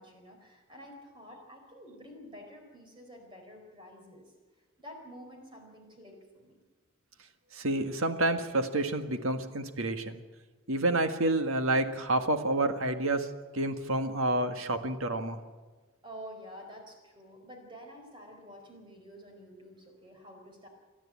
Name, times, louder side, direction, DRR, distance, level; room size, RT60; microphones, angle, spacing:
voice 1, 0.0-4.3 4.8-6.6 16.0-20.7, equal, 25° right, 2 dB, 4.5 m, -49 dB
voice 2, 7.5-10.2 10.7-13.3 13.5-15.4, right 2 dB, 75° right, 7 dB, 1.7 m, -29 dB
29.5 x 12.0 x 8.6 m, 1.3 s
head